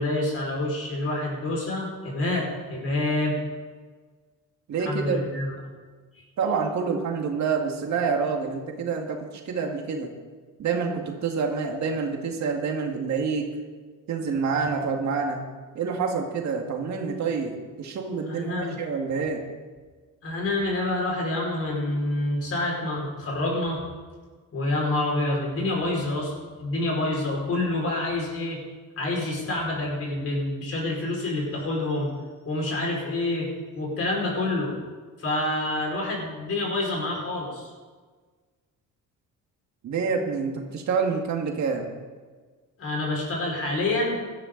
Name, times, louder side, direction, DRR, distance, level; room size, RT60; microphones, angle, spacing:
voice 1, 0.0-3.4 4.8-5.5 6.1-6.2 18.3-18.8 20.2-23.8 24.5-26.3 26.6-28.6 29.0-32.1 32.5-33.5 33.8-34.7 35.2-37.7 42.8-44.2, left 2 dB, 40° left, -2 dB, 5.3 m, -27 dB
voice 2, 4.7-5.2 6.4-10.1 10.6-13.5 14.1-15.4 15.7-19.4 39.8-41.9, right 5 dB, 55° right, 2 dB, 2.0 m, -27 dB
17.0 x 12.5 x 4.0 m, 1.4 s
cardioid pair, 130°, 34 cm